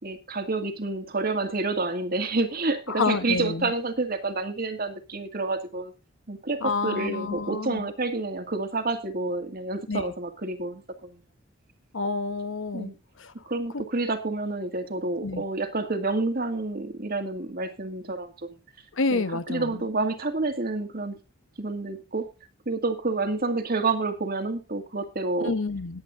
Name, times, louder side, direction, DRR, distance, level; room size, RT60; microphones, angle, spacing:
voice 1, 0.0-5.9 6.3-11.2 12.7-13.0 13.5-18.6 19.1-21.2 21.6-22.3 22.7-25.5, right 3 dB, 50° right, 7 dB, 2.0 m, -29 dB
voice 2, 2.9-3.7 6.6-7.9 9.9-10.0 11.9-12.9 13.2-13.3 13.7-13.8 15.2-15.4 18.9-19.8 25.4-26.0, left 3 dB, 80° left, 12 dB, 1.0 m, -28 dB
20.5 x 8.4 x 2.6 m, 0.28 s
head